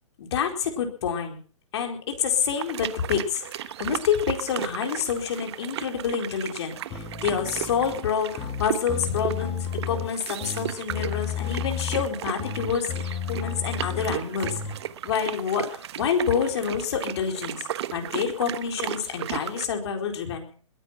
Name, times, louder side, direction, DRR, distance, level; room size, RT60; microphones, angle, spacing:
voice 1, 0.2-1.4 1.7-14.6 15.0-20.5, left 7 dB, 55° left, 4 dB, 4.4 m, -28 dB
sound 1, 2.6-19.7, right 11 dB, 55° right, 1.0 m, -35 dB
sound 2, 6.9-14.8, left 7 dB, 20° left, 2.3 m, -33 dB
21.0 x 10.0 x 6.1 m, 0.43 s
hypercardioid pair, 155°, 17 cm